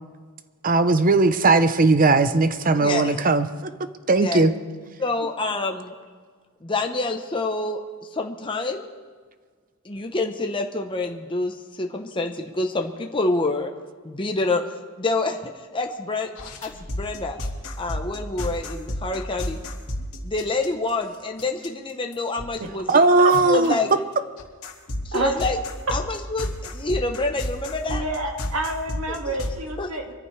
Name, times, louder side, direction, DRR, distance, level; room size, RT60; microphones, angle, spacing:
voice 1, 0.6-3.7 4.1-4.5 22.9-23.7, right 3 dB, 40° right, 11 dB, 0.8 m, -18 dB
voice 2, 2.8-3.1 4.2-4.5 5.0-5.9 6.6-7.8 8.1-8.9 9.8-13.7 14.0-14.6 15.0-16.3 16.6-17.4 17.8-19.6 20.2-23.0 23.4-23.9 25.0-25.6 25.9-28.0 29.8-29.9, left 2 dB, 25° left, 3 dB, 0.9 m, -27 dB
sound 1, 16.4-20.9 21.4-21.7 22.1-22.6 22.9-23.0 23.3-23.7 24.4-29.6, left 1 dB, 75° left, 2.1 m, -31 dB
voice 3, 27.9-30.1, right 1 dB, 70° right, 2 dB, 2.1 m, -28 dB
24.5 x 14.5 x 3.3 m, 1.5 s
head